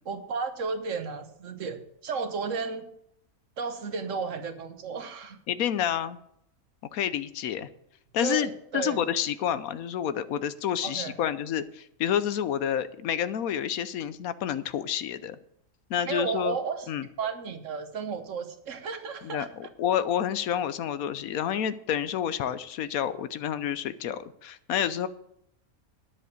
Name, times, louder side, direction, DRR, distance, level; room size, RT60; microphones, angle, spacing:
voice 1, 0.0-2.9 3.6-5.4 8.2-9.0 10.8-11.2 16.0-19.5, right 5 dB, 60° right, 9 dB, 1.4 m, -33 dB
voice 2, 5.5-6.2 6.9-7.7 8.1-15.4 15.9-16.6 16.9-17.0 19.2-25.1, left 9 dB, 75° left, 14 dB, 1.1 m, -29 dB
10.5 x 7.8 x 6.5 m, 0.74 s
omnidirectional pair, 1.5 m